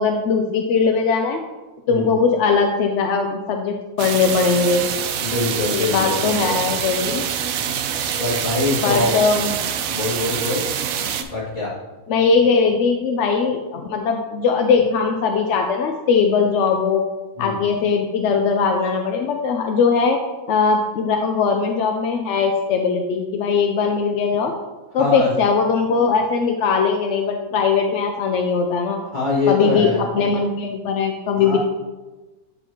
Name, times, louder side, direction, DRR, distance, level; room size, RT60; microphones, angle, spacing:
voice 1, 0.0-1.4 1.9-4.9 5.7-7.2 8.8-9.6 11.0-11.1 12.1-17.0 17.4-20.2 20.5-24.5 24.9-29.0 29.5-31.6, left 5 dB, 70° left, 4 dB, 0.7 m, -20 dB
sound 1, 4.0-11.2, right 8 dB, 70° right, 0.9 m, -25 dB
voice 2, 5.2-6.6 7.6-7.8 8.1-9.1 9.9-10.6 11.3-11.7 17.4-17.6 25.0-25.3 29.1-30.0 31.4-31.6, left 3 dB, 30° left, -7 dB, 2.2 m, -24 dB
8.0 x 5.6 x 2.9 m, 1.2 s
omnidirectional pair, 1.6 m